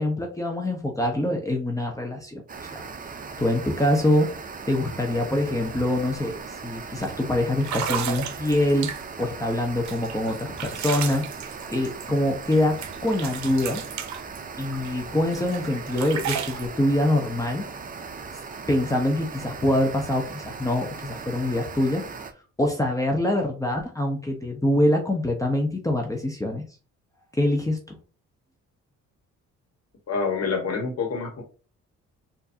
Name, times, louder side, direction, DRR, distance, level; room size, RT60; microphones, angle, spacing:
voice 1, 0.0-2.9 3.1-4.3 4.7-8.9 9.2-11.2 11.7-13.8 14.6-17.6 18.7-22.0 22.6-26.6 27.3-28.0, left 1 dB, 10° left, 2 dB, 0.8 m, -25 dB
sound 1, 2.5-22.3, right 5 dB, 30° right, 0.6 m, -38 dB
sound 2, 5.6-5.8 6.1-6.4 7.0-7.1 7.6-9.3 9.9-12.6 12.8-14.9 15.3-16.7, right 8 dB, 65° right, 0.7 m, -33 dB
voice 2, 30.1-31.4, left 4 dB, 55° left, 1 dB, 1.5 m, -27 dB
4.4 x 2.7 x 2.7 m, 0.37 s
cardioid pair, 90°, 30 cm